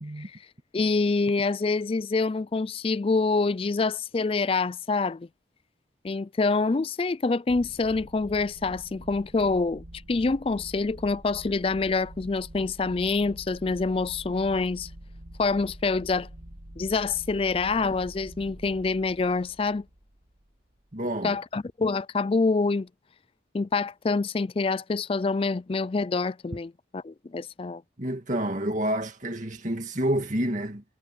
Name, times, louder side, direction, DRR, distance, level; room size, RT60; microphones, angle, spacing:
voice 1, 0.7-5.3 6.0-14.9 15.4-16.3 16.8-19.9 21.2-22.9 23.5-27.8, left 3 dB, 30° left, 0.4 m, -26 dB
sound 1, 7.5-20.8, right 1 dB, 60° right, 2.2 m, -46 dB
voice 2, 20.9-21.4 28.0-30.8, right 1 dB, 40° right, 2.1 m, -29 dB
head